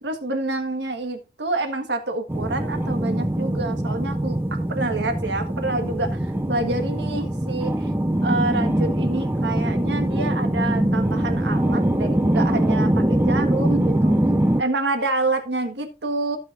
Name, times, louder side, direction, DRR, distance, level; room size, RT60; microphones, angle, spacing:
voice 1, 0.0-7.9 8.2-14.1 14.6-16.4, right 2 dB, 80° right, 6 dB, 1.5 m, -27 dB
sound 1, 2.3-14.6, right 1 dB, 15° right, 0.6 m, -22 dB
15.5 x 5.8 x 2.6 m, 0.29 s
head